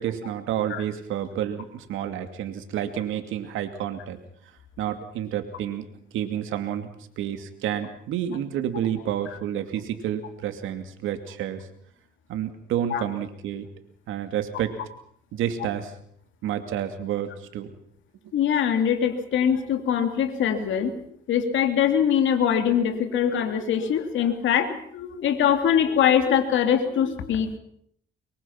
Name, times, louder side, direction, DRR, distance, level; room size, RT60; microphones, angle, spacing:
voice 1, 0.0-4.2 4.8-5.8 6.1-11.7 12.3-13.7 14.1-14.7 15.3-15.9 16.4-17.7 18.2-18.3 20.8-20.9, right 10 dB, 90° right, 8 dB, 2.6 m, -30 dB
voice 2, 18.3-20.9 21.3-27.6, left 8 dB, 75° left, 7 dB, 2.6 m, -23 dB
23.5 x 23.0 x 5.8 m, 0.66 s
cardioid pair, 90°, 20 cm